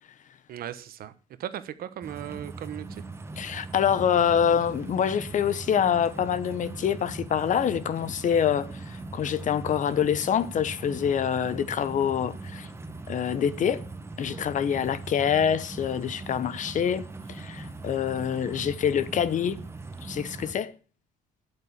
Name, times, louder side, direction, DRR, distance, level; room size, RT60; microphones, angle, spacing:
voice 1, 0.5-1.1 1.4-3.0, right 11 dB, 60° right, 1.1 m, -37 dB
sound 1, 2.0-20.5, right 3 dB, 15° right, 1.1 m, -40 dB
voice 2, 3.4-12.7 13.1-13.9 14.2-19.6 20.0-20.7, left 8 dB, 50° left, 0.9 m, -26 dB
8.9 x 8.2 x 7.3 m
cardioid pair, 110°, 17 cm